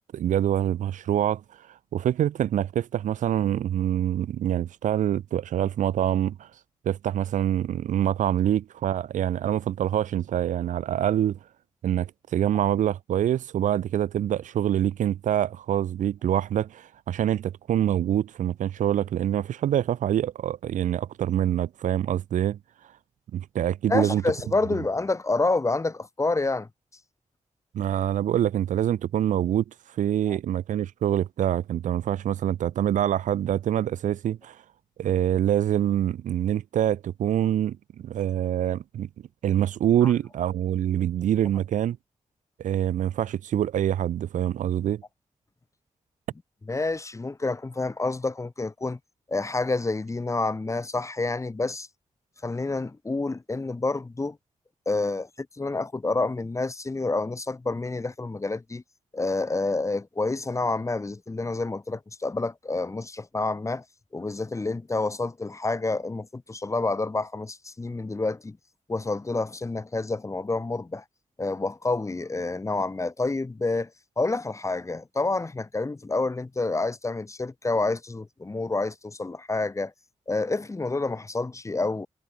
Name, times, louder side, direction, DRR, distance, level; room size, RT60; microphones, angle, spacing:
voice 1, 0.1-1.4 1.9-6.5 6.9-11.4 11.8-22.6 23.3-24.2 27.7-29.6 30.0-34.6 35.0-39.1 39.4-42.0 42.6-45.0, right 11 dB, 90° right, 0.4 m, -25 dB
voice 2, 23.9-26.7 30.3-30.4 40.0-40.1 46.7-49.0 49.3-51.9 52.4-54.4 54.9-58.8 59.1-63.8 64.1-68.6 68.9-71.0 71.4-73.9 74.2-79.9 80.3-82.1, left 3 dB, 25° left, 0.6 m, -28 dB
cardioid pair, 60°, 13 cm